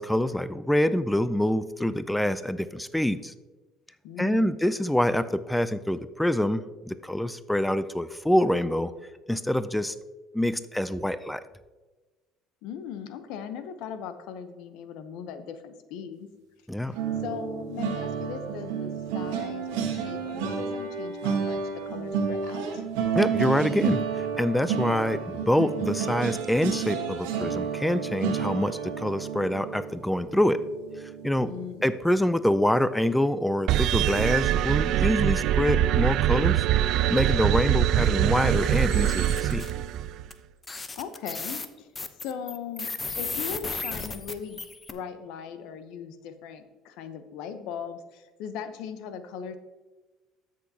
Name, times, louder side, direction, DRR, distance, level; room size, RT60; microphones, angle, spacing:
voice 1, 0.0-3.3 4.2-8.9 9.3-9.9 10.3-11.4 16.7-16.9 23.1-30.6 31.2-31.5 31.8-36.6 37.1-39.7, left 1 dB, 5° left, 13 dB, 0.4 m, -26 dB
voice 2, 4.0-4.6 12.6-16.3 16.8-16.9 17.2-21.6 21.9-22.8 31.4-31.8 40.9-41.9 42.2-44.6 44.9-49.6, left 7 dB, 75° left, 10 dB, 0.8 m, -39 dB
sound 1, 16.9-32.1 32.5-32.7 33.0-33.2, right 6 dB, 85° right, 1.3 m, -31 dB
sound 2, 33.7-40.3, right 12 dB, 65° right, 0.3 m, -23 dB
sound 3, 38.9-39.7 40.3-40.4 40.6-44.9, left 3 dB, 25° left, 0.7 m, -35 dB
13.5 x 6.4 x 2.8 m, 1.2 s
supercardioid pair, 90°, 0 cm